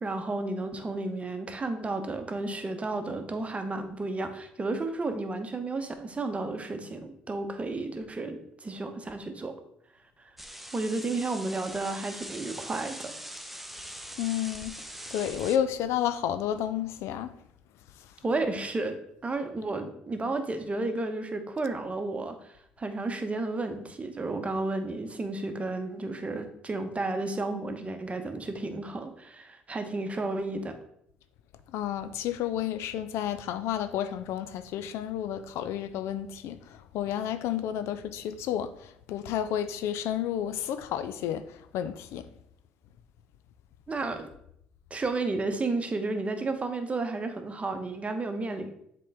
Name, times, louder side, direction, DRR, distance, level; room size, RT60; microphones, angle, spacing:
voice 1, 0.0-9.5 10.7-13.1 18.2-19.0 19.2-30.7 43.9-44.3 44.9-48.7, right 2 dB, 25° right, 0.9 m, -32 dB
sound 1, 10.4-15.6, equal, 5° right, 0.6 m, -42 dB
voice 2, 14.2-17.4 18.0-18.1 31.7-42.3, left 10 dB, 65° left, 0.4 m, -31 dB
7.4 x 3.8 x 3.4 m
hypercardioid pair, 55°, 5 cm